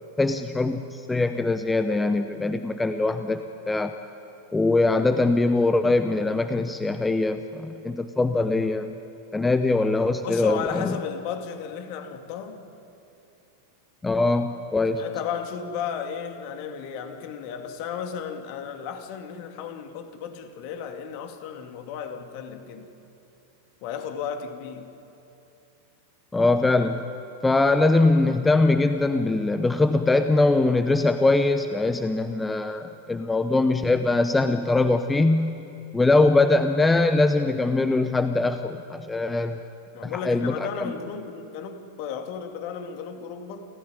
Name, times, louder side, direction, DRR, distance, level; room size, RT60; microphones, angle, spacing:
voice 1, 0.2-3.9 4.5-8.9 9.3-11.0 14.0-15.0 26.3-27.1 27.4-35.5 35.9-39.6 40.0-40.7, left 2 dB, 10° left, 0.9 m, -22 dB
voice 2, 10.2-12.6 15.0-22.9 23.8-25.0 39.9-43.7, left 7 dB, 45° left, 2.3 m, -34 dB
29.0 x 14.5 x 9.9 m
figure-of-eight pair, 90°, 0 cm